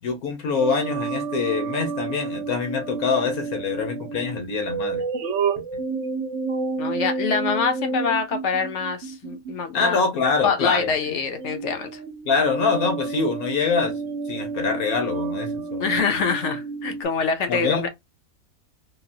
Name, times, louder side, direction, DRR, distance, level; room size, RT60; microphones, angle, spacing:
voice 1, 0.0-5.0 9.7-10.9 12.2-15.9 17.5-17.9, left 5 dB, 80° left, 1.5 m, -25 dB
fakeglitched voice, 0.6-10.0 10.7-11.1 11.4-17.0, right 4 dB, 60° right, 0.9 m, -30 dB
voice 2, 6.8-10.0 10.4-12.0 15.8-17.9, left 5 dB, 65° left, 0.9 m, -25 dB
3.8 x 2.0 x 2.6 m
omnidirectional pair, 1.5 m